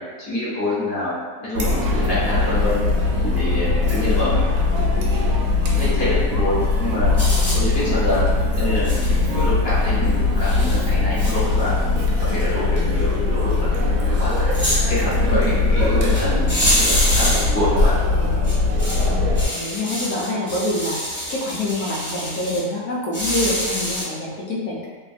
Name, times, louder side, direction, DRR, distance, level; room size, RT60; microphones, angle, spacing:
voice 1, 0.0-2.8 3.3-4.4 5.7-7.1 7.5-8.3 8.6-8.9 9.2-11.7 12.2-14.6 14.9-17.9, left 1 dB, 45° left, -10 dB, 1.1 m, -26 dB
Chatter, 1.5-19.4, left 3 dB, 70° right, 0.9 m, -20 dB
sound 1, 7.2-7.6 8.8-9.1 9.8-9.9 10.4-10.8 11.2-12.0 12.3-12.4 12.8-12.9 14.2-14.8 16.1-16.2 16.5-17.4 18.4-19.0 19.4-22.6 23.1-24.0, equal, 15° left, 1.1 m, -25 dB
voice 2, 19.0-24.9, left 1 dB, 80° left, -4 dB, 1.2 m, -26 dB
2.8 x 2.5 x 2.4 m, 1.5 s
omnidirectional pair, 1.6 m